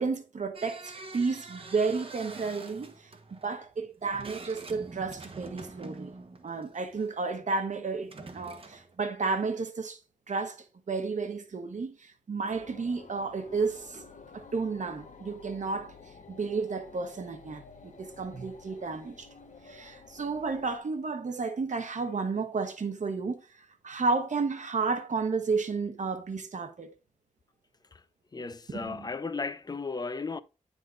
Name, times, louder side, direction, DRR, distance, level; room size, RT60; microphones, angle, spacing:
voice 1, 0.0-6.1 6.4-10.0 10.3-14.0 14.3-15.9 16.3-19.3 19.6-23.4 23.8-26.9 28.8-29.1, right 4 dB, 65° right, 1.0 m, -32 dB
sound 1, 0.5-7.1 7.9-9.0, right 3 dB, 45° right, 1.1 m, -46 dB
sound 2, 12.4-20.8, left 5 dB, 70° left, 1.1 m, -51 dB
voice 2, 28.3-30.4, left 4 dB, 30° left, 0.4 m, -35 dB
9.2 x 3.6 x 3.8 m
wide cardioid pair, 105°, 13 cm